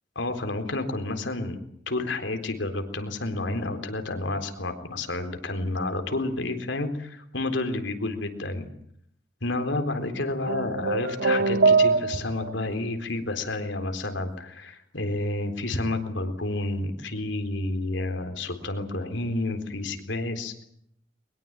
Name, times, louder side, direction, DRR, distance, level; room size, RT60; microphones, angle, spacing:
voice 1, 0.2-1.6 1.9-8.7 9.4-20.6, left 2 dB, 85° left, 7 dB, 4.0 m, -30 dB
sound 1, 10.5-12.5, right 4 dB, 70° right, 1.0 m, -22 dB
22.5 x 22.0 x 9.0 m, 0.70 s
head